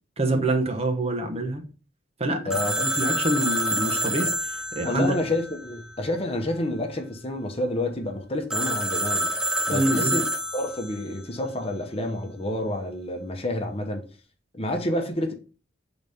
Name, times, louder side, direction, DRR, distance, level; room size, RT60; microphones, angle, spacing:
voice 1, 0.2-1.6 2.2-5.1 9.7-10.2, right 1 dB, 35° right, 1.0 m, -26 dB
voice 2, 2.4-2.9 4.8-9.3 9.7-10.2 10.5-14.0 14.5-15.3, left 1 dB, 35° left, 0.9 m, -29 dB
Telephone, 2.5-6.1 8.5-11.0, right 1 dB, 5° right, 0.6 m, -27 dB
7.0 x 4.0 x 3.5 m
head